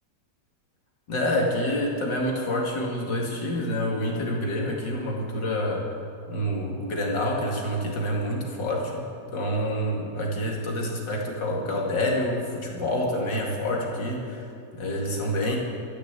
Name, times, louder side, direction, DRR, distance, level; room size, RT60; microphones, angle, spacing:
voice 1, 1.1-5.9 6.3-9.0 9.3-14.5 14.7-15.6, left 1 dB, 90° left, -1 dB, 3.0 m, -27 dB
13.5 x 11.0 x 8.3 m, 2.6 s
omnidirectional pair, 1.9 m